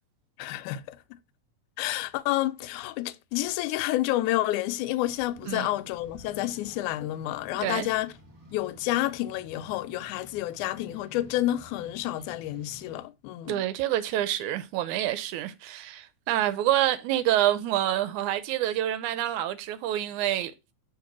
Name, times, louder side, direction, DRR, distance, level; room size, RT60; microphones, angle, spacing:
voice 1, 0.4-1.0 1.8-8.1 8.5-13.6, left 15 dB, 80° left, 1.9 m, -29 dB
sound 1, 5.0-13.0, equal, 30° right, 1.8 m, -52 dB
voice 2, 13.5-20.5, right 13 dB, 80° right, 1.9 m, -27 dB
5.8 x 4.2 x 5.9 m
omnidirectional pair, 3.7 m